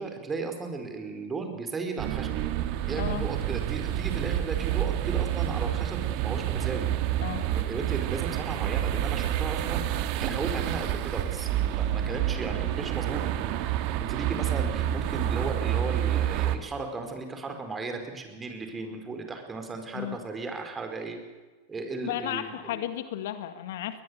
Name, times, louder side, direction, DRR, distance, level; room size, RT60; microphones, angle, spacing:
voice 1, 0.0-2.4 2.8-6.9 7.5-13.3 14.0-21.2 21.7-22.8, right 3 dB, 20° right, 6 dB, 4.8 m, -36 dB
sound 1, 2.0-16.6, right 12 dB, 50° right, 1.9 m, -28 dB
voice 2, 3.0-3.3 7.2-7.5 19.9-20.2 22.0-24.0, left 12 dB, 65° left, 11 dB, 1.8 m, -34 dB
21.0 x 21.0 x 8.2 m, 1.3 s
hypercardioid pair, 95°, 0 cm